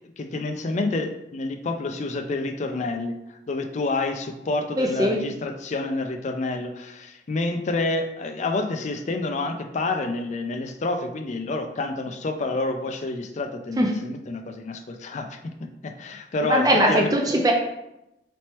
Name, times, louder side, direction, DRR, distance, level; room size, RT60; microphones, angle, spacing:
voice 1, 0.2-3.1 3.5-15.4 15.8-17.1, left 2 dB, 40° left, 5 dB, 0.4 m, -28 dB
voice 2, 4.8-5.2 13.8-13.9 16.5-17.5, right 1 dB, 20° right, 1 dB, 0.4 m, -20 dB
4.2 x 3.2 x 2.9 m, 0.87 s
head